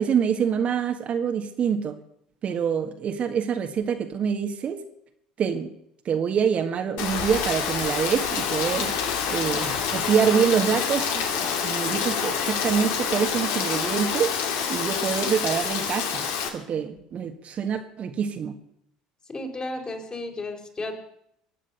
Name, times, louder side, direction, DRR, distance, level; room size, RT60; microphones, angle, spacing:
voice 1, 0.0-2.0 2.4-4.8 5.4-5.7 6.1-11.3 11.6-14.3 14.7-18.5, right 7 dB, 45° right, 5 dB, 1.7 m, -26 dB
Rain, 7.0-16.5, left 7 dB, 65° left, 2.4 m, -27 dB
voice 2, 19.3-20.9, left 2 dB, 30° left, 3 dB, 4.1 m, -33 dB
23.0 x 8.6 x 6.9 m, 0.75 s
hypercardioid pair, 65°, 3 cm